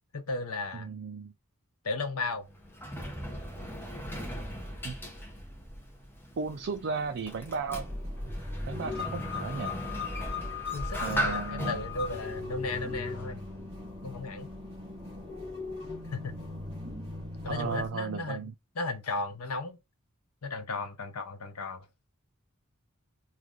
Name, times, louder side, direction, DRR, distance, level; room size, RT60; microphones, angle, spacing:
voice 1, 0.1-0.9 1.8-2.5 10.7-13.4 14.0-14.5 16.1-16.4 17.4-18.5 18.8-19.8 20.4-21.9, left 3 dB, 75° left, 0.7 m, -35 dB
voice 2, 0.7-1.3 4.8-5.0 6.4-7.9 8.7-9.7 11.0-11.8 17.5-18.5, right 5 dB, 55° right, 0.4 m, -35 dB
Sliding door, 2.3-13.7, equal, 10° left, 0.8 m, -38 dB
sound 1, 7.7-17.9, left 4 dB, 30° right, 1.4 m, -38 dB
3.2 x 2.4 x 3.6 m
head